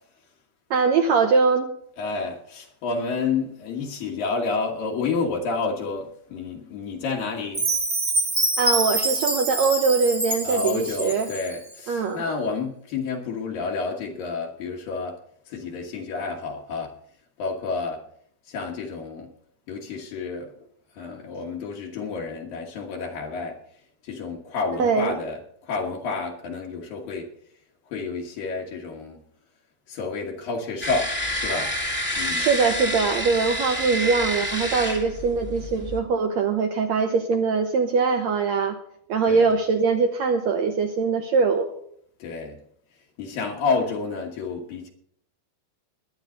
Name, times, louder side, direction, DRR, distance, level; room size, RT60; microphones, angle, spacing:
voice 1, 0.7-1.7 8.6-11.3 11.9-12.2 24.8-25.2 32.4-38.8 39.1-41.7, right 5 dB, 75° right, 1.6 m, -22 dB
voice 2, 2.0-7.8 10.4-15.2 15.5-16.9 17.4-18.0 18.5-19.3 19.7-20.5 21.0-23.6 24.0-27.3 27.9-29.2 29.9-31.7 32.2-32.5 39.3-39.5 42.2-42.6 43.2-44.9, left 4 dB, 70° left, 3.2 m, -30 dB
Chime, 7.5-11.6, right 2 dB, 40° right, 0.6 m, -26 dB
sound 1, 30.8-36.0, equal, 5° left, 1.0 m, -28 dB
21.5 x 9.4 x 3.9 m
omnidirectional pair, 4.3 m